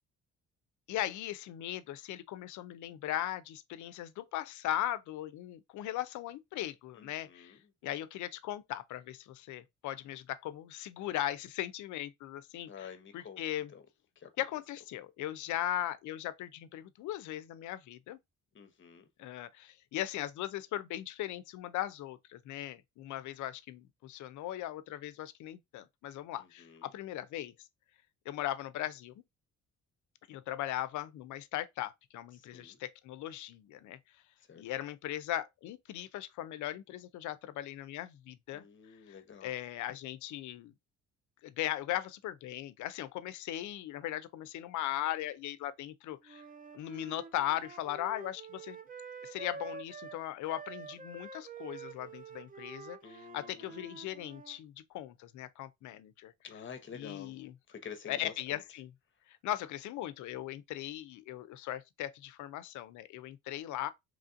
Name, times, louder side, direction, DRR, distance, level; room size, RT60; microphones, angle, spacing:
voice 1, 0.9-13.7 14.4-18.2 19.2-27.5 28.3-29.1 30.3-34.0 34.6-38.6 39.1-40.7 41.4-46.4 46.7-48.8 49.2-56.3 56.9-57.5 58.1-58.9 59.3-63.9, left 13 dB, 75° left, 0.5 m, -38 dB
voice 2, 7.0-7.6 12.7-13.4 13.7-13.8 14.2-14.3 18.5-19.1 26.4-26.9 32.4-32.8 34.5-34.6 38.5-39.5 53.0-53.8 56.4-57.3 57.7-58.6, left 7 dB, 40° left, 0.8 m, -49 dB
Wind instrument woodwind instrument, 46.2-54.6, right 5 dB, 30° right, 0.5 m, -48 dB
3.1 x 2.5 x 2.5 m
cardioid pair, 90°, 30 cm